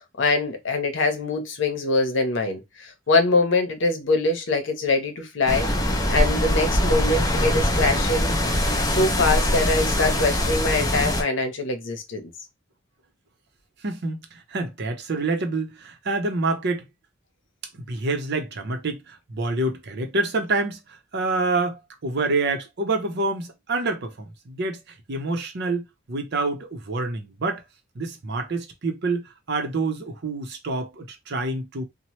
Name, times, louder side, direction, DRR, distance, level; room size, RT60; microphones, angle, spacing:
voice 1, 0.2-8.3 8.8-12.3, left 3 dB, 70° left, 0.8 m, -23 dB
sound 1, 5.5-11.2, left 1 dB, 20° left, 0.6 m, -22 dB
voice 2, 13.8-16.8 17.7-20.8 21.1-24.8 25.1-27.6 27.9-31.8, right 3 dB, 60° right, 0.7 m, -27 dB
2.9 x 2.1 x 3.0 m
head